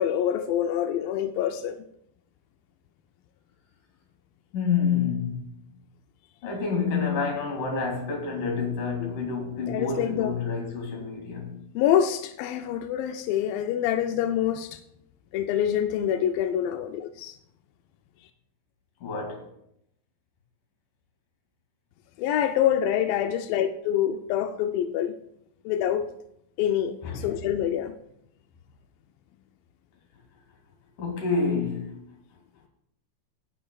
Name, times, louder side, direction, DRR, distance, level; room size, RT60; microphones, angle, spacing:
voice 1, 0.0-1.8 9.0-9.1 9.7-10.3 11.8-14.8 15.3-17.4 22.2-25.1 25.7-26.1 26.6-27.9, left 10 dB, 80° left, 2.1 m, -26 dB
voice 2, 4.5-5.6 6.4-11.6 19.0-19.5 27.0-27.3 31.0-32.0, left 5 dB, 60° left, 3.8 m, -28 dB
17.0 x 10.0 x 2.3 m
omnidirectional pair, 4.5 m